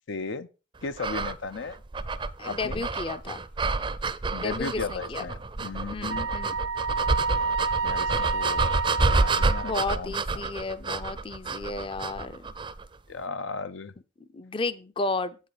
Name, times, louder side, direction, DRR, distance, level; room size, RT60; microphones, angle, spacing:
voice 1, 0.1-0.5 0.8-1.8 2.4-2.9 4.3-6.3 7.8-10.4 13.1-13.9, left 4 dB, 85° left, 0.6 m, -36 dB
sound 1, 1.0-12.9, right 3 dB, 25° right, 0.5 m, -29 dB
voice 2, 2.4-3.4 4.4-5.3 5.9-6.6 9.6-12.5 14.3-15.4, left 3 dB, 30° left, 0.5 m, -33 dB
Wind instrument woodwind instrument, 6.1-10.0, right 4 dB, 80° right, 0.5 m, -29 dB
8.4 x 6.5 x 4.9 m
head